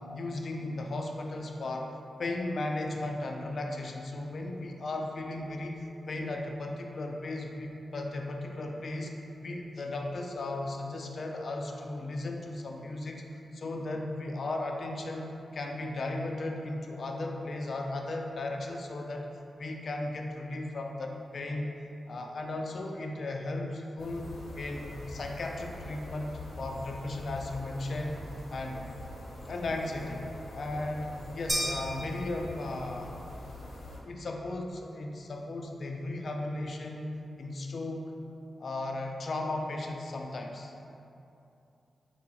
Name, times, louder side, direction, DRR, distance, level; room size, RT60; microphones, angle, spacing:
voice 1, 0.0-9.1 9.4-13.2 13.5-19.3 19.6-21.7 22.1-24.3 24.6-28.1 28.5-28.9 29.5-30.3 30.5-33.2 34.0-37.1 37.4-38.1 38.6-40.7, left 2 dB, 50° left, 2 dB, 0.4 m, -36 dB
sound 1, 24.0-34.0, left 1 dB, 75° left, 0.8 m, -44 dB
sound 2, 31.5-32.9, right 1 dB, 30° right, 0.7 m, -34 dB
4.7 x 2.3 x 4.1 m, 2.8 s
wide cardioid pair, 155°, 0 cm